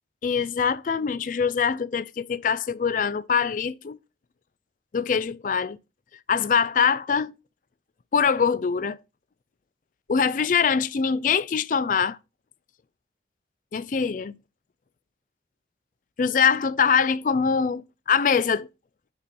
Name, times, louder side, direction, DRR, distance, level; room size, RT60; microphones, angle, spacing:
voice 1, 0.2-4.0 4.9-5.8 6.3-7.3 8.1-9.0 10.1-12.2 13.7-14.3 16.2-18.7, left 6 dB, 45° left, 0.4 m, -23 dB
5.5 x 4.2 x 5.2 m
head